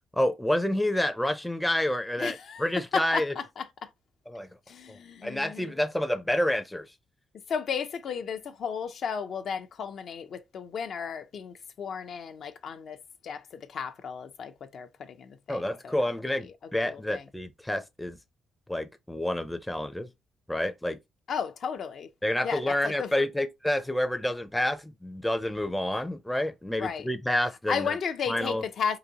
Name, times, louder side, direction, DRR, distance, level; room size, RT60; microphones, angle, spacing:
voice 1, 0.2-3.3 4.3-4.5 4.9-6.9 15.5-18.2 18.7-20.1 20.5-21.0 22.2-27.9 28.3-28.6, left 1 dB, 5° left, 0.5 m, -29 dB
voice 2, 2.2-3.9 4.7-5.7 7.5-13.0 13.2-16.0 16.3-16.5 16.8-17.3 21.3-22.1 22.4-23.1 26.8-27.1 27.7-29.0, left 6 dB, 60° left, 0.5 m, -34 dB
3.9 x 2.6 x 2.8 m
cardioid pair, 90°, 0 cm